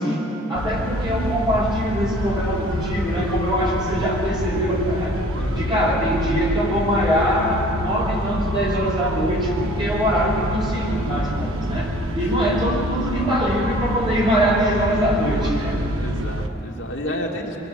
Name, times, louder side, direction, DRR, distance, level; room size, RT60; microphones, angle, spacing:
voice 1, 0.0-5.2 5.6-15.8, equal, 20° right, -4 dB, 5.2 m, -23 dB
sound 1, 0.5-16.5, equal, 90° right, 1.3 m, -27 dB
voice 2, 5.4-5.7 12.2-12.6 16.0-17.6, equal, 65° left, -2 dB, 2.7 m, -31 dB
23.5 x 23.0 x 7.9 m, 3.0 s
head